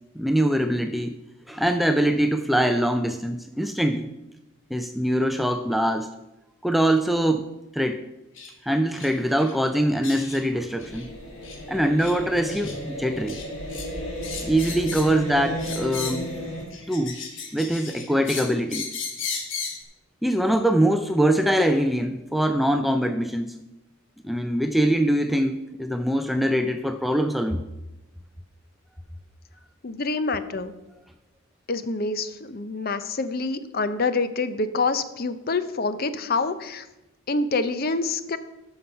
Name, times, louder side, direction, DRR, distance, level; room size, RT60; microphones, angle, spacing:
voice 1, 0.2-1.2 1.5-4.1 4.7-6.1 6.6-8.0 8.6-11.1 11.7-13.4 14.4-16.3 16.9-17.2 17.5-18.9 20.2-23.5 24.2-27.6, right 1 dB, ahead, 7 dB, 0.4 m, -23 dB
sound 1, 8.4-8.5 8.9-9.1 9.4-9.5 10.0-10.4 10.8-11.1 11.4-11.6 12.0-12.2 12.5-12.8 13.3-13.9 14.2-15.2 15.6-16.3 16.7-19.8, left 5 dB, 60° left, 1.4 m, -35 dB
sound 2, 10.8-16.6, equal, 75° left, 3.9 m, -34 dB
voice 2, 29.8-30.7 31.7-36.9 37.3-38.4, left 3 dB, 45° left, 12 dB, 0.6 m, -26 dB
13.0 x 5.8 x 5.6 m, 0.97 s
head